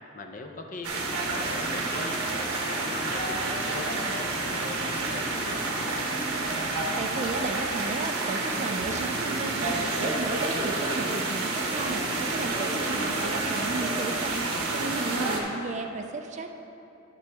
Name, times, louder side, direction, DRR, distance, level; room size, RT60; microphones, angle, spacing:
voice 1, 0.1-2.2 2.5-5.6, left 2 dB, 40° left, 3 dB, 0.5 m, -41 dB
sound 1, 0.8-15.4, right 2 dB, 85° right, 1.0 m, -29 dB
voice 2, 7.0-16.5, right 3 dB, 35° right, 5 dB, 0.3 m, -34 dB
10.5 x 5.9 x 3.4 m, 2.9 s
head